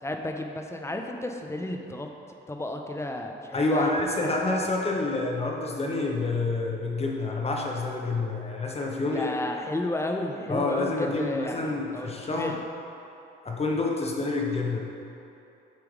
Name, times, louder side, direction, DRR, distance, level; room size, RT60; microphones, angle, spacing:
voice 1, 0.0-2.1 2.5-3.9 4.2-4.3 9.1-11.6 11.9-12.6, left 1 dB, 15° left, 3 dB, 0.6 m, -32 dB
voice 2, 3.5-9.3 10.5-12.6 13.4-14.8, left 2 dB, 30° left, 0 dB, 1.0 m, -28 dB
8.7 x 3.4 x 4.7 m, 2.9 s
cardioid pair, 90°, 20 cm